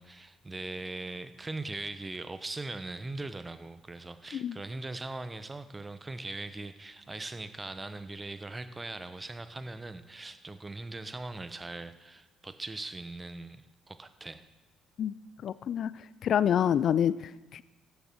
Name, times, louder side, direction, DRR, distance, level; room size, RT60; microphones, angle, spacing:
voice 1, 0.0-13.6 13.9-14.5, right 2 dB, 20° right, 11 dB, 0.9 m, -40 dB
voice 2, 15.4-15.9 16.2-17.6, left 9 dB, 55° left, 18 dB, 0.4 m, -27 dB
13.5 x 9.4 x 4.5 m, 1.1 s
hypercardioid pair, 55°, 0 cm